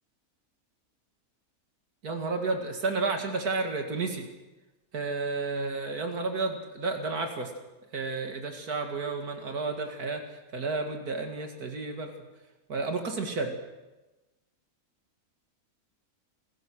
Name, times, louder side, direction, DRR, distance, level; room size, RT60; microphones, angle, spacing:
voice 1, 2.0-4.2 4.9-7.5 7.9-10.2 10.5-12.1 12.7-13.5, right 3 dB, 90° right, 4 dB, 2.7 m, -31 dB
28.5 x 16.0 x 6.3 m, 1.1 s
omnidirectional pair, 1.6 m